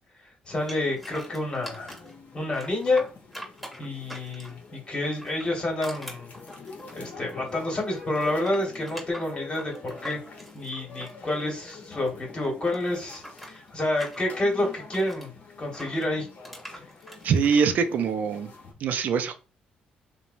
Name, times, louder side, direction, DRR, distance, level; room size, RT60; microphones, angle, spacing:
sound 1, 0.5-18.7, left 4 dB, 55° left, 0.8 m, -46 dB
voice 1, 0.5-2.0 2.3-3.0 3.8-6.3 6.9-9.7 10.0-10.2 10.5-15.3 15.6-16.3, left 2 dB, 35° left, 1.2 m, -28 dB
sound 2, 0.7-2.1 2.5-4.7 5.1-7.7 7.9-12.1 12.4-15.3 15.7-17.6, equal, ahead, 1.1 m, -43 dB
voice 2, 17.2-18.5 18.8-19.3, right 6 dB, 65° right, 0.4 m, -23 dB
3.0 x 2.1 x 2.5 m
cardioid pair, 100°, 3 cm